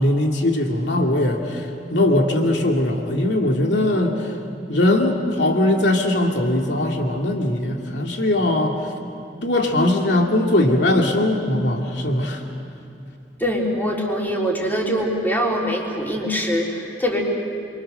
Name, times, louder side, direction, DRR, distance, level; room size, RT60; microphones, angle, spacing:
voice 1, 0.0-4.2 4.7-8.8 9.4-12.4, left 1 dB, 85° left, 1 dB, 2.6 m, -20 dB
voice 2, 13.4-17.2, equal, 10° left, -2 dB, 3.8 m, -23 dB
28.0 x 24.5 x 6.7 m, 2.6 s
head